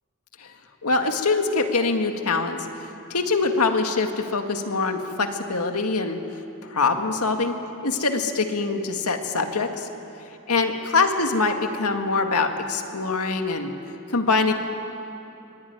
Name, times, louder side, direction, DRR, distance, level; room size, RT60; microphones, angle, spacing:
voice 1, 0.8-6.2 6.6-7.5 7.8-9.9 10.5-13.7 14.1-14.5, left 3 dB, 75° left, 5 dB, 2.0 m, -24 dB
24.5 x 19.0 x 9.7 m, 3.0 s
head